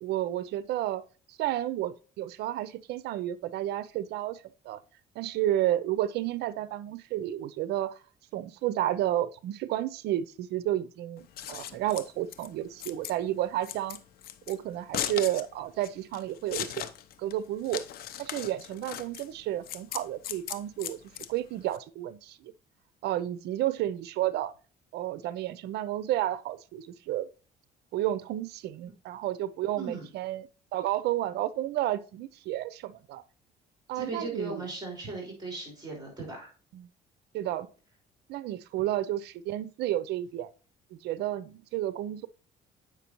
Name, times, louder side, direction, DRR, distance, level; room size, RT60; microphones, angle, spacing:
voice 1, 0.0-1.0 1.3-4.8 5.2-8.0 8.3-14.0 14.5-16.9 17.2-17.8 18.2-21.0 21.3-22.5 23.0-24.5 24.9-27.3 27.9-33.2 33.9-34.6 36.7-36.9 37.3-37.7 38.3-40.5 40.9-42.3, right 13 dB, 75° right, 0.6 m, -31 dB
Scissors, 11.2-21.8, left 10 dB, 65° left, 0.7 m, -38 dB
voice 2, 29.7-30.1 33.9-36.5, right 3 dB, 25° right, 3.7 m, -37 dB
8.2 x 5.8 x 3.0 m
cardioid pair, 110°, 17 cm